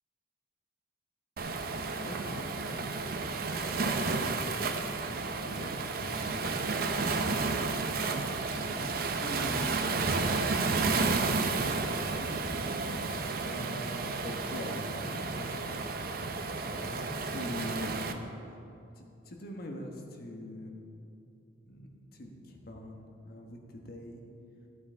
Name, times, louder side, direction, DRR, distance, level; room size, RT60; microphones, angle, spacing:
Waves surf, 1.4-18.1, right 3 dB, 50° right, 0.7 m, -32 dB
voice 1, 2.0-3.1 3.5-4.6 5.4-6.9 7.2-7.7 8.5-11.0 12.0-12.4 12.9-16.0 16.6-17.9 18.9-20.7 21.7-24.2, left 1 dB, 50° left, 2 dB, 1.2 m, -44 dB
14.0 x 8.6 x 4.4 m, 2.7 s
head